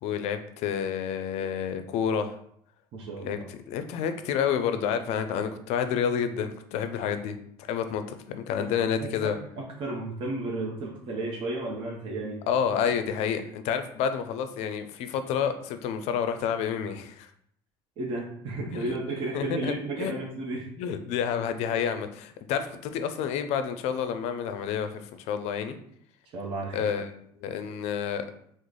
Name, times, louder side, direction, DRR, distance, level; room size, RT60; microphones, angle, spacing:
voice 1, 0.0-2.4 3.2-9.4 12.5-17.3 18.7-18.9 19.3-20.2 20.8-25.8 26.7-27.1 27.4-28.2, left 7 dB, 65° left, 9 dB, 0.4 m, -29 dB
voice 2, 2.9-3.5 8.6-12.4 18.0-20.7 26.3-26.9, right 2 dB, 50° right, -2 dB, 0.6 m, -33 dB
3.1 x 2.0 x 3.8 m, 0.68 s
supercardioid pair, 95°, 12 cm